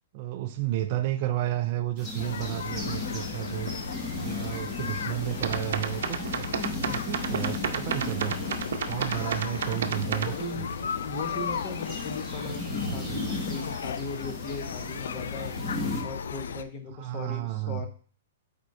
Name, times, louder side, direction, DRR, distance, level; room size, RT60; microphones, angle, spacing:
voice 1, 0.1-3.7 4.2-8.4 8.9-10.7 16.9-17.9, right 13 dB, 35° right, 6 dB, 0.3 m, -32 dB
sound 1, 2.0-16.0, left 2 dB, 10° left, 1.1 m, -37 dB
sound 2, 2.2-16.6, left 7 dB, 80° left, 0.4 m, -36 dB
voice 2, 5.4-5.9 9.7-15.6 16.0-17.9, left 3 dB, 25° left, 5 dB, 0.9 m, -38 dB
sound 3, 5.4-10.3, right 7 dB, 70° right, 0.6 m, -31 dB
5.0 x 4.4 x 4.6 m, 0.42 s
hypercardioid pair, 165°, 0 cm